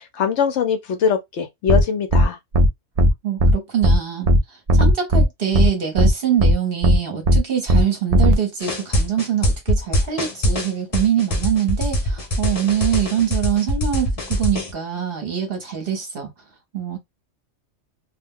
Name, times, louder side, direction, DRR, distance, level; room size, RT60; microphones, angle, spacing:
voice 1, 0.0-2.4, left 7 dB, 70° left, 0.9 m, -22 dB
sound 1, 1.7-1.8 2.1-2.2 2.5-2.7 3.0-3.1 3.4-3.5 3.8-4.0 4.3-4.4 4.7-5.2 5.5-5.7 6.0-6.1 6.4-6.5 6.8-7.0 7.3-7.4 7.7-7.8 8.1-8.3, equal, 70° right, 0.3 m, -14 dB
voice 2, 3.2-4.3 4.7-16.3 16.7-17.0, right 9 dB, 50° right, 1.0 m, -24 dB
sound 2, 8.6-14.7, equal, 30° left, 0.8 m, -23 dB
2.4 x 2.1 x 3.4 m
omnidirectional pair, 1.3 m